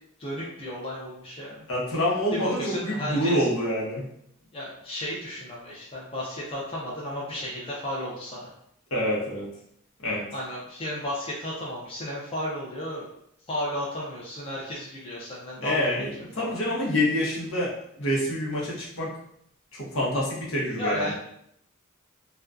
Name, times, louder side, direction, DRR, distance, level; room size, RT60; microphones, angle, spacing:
voice 1, 0.2-1.6 2.3-3.5 4.5-8.5 10.3-13.1 13.5-15.8 16.4-16.6 20.8-21.1, left 1 dB, 25° left, -5 dB, 0.4 m, -33 dB
voice 2, 1.7-4.1 8.9-9.5 10.0-10.3 15.6-19.1 19.7-21.1, left 1 dB, 70° left, -5 dB, 0.8 m, -27 dB
2.5 x 2.2 x 2.3 m, 0.71 s
head